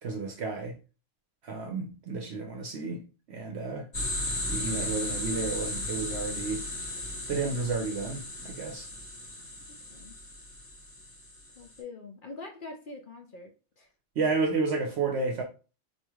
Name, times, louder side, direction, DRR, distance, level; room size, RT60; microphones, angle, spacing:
voice 1, 0.0-0.7 1.4-3.9 4.5-8.9 14.2-15.4, right 4 dB, 65° right, 0.8 m, -32 dB
sound 1, 3.9-11.7, left 1 dB, 40° left, 1.7 m, -35 dB
voice 2, 11.6-13.9, left 3 dB, 55° left, 0.6 m, -44 dB
4.2 x 3.1 x 2.3 m
omnidirectional pair, 1.3 m